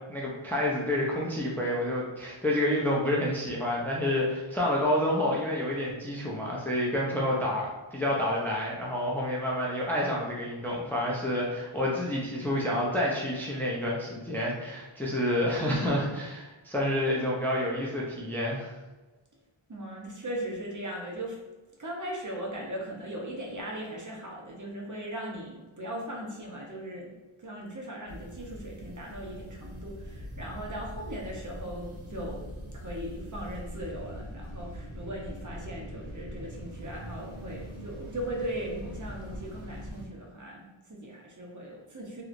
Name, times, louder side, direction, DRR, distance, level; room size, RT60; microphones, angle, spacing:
voice 1, 0.1-18.7, left 1 dB, 5° left, -4 dB, 0.5 m, -29 dB
voice 2, 19.7-21.4 21.8-32.4 32.7-42.2, right 1 dB, 40° right, -2 dB, 0.7 m, -38 dB
sound 1, 28.1-40.0, equal, 70° right, 1.1 m, -42 dB
3.0 x 2.9 x 2.5 m, 1.2 s
wide cardioid pair, 70°, 49 cm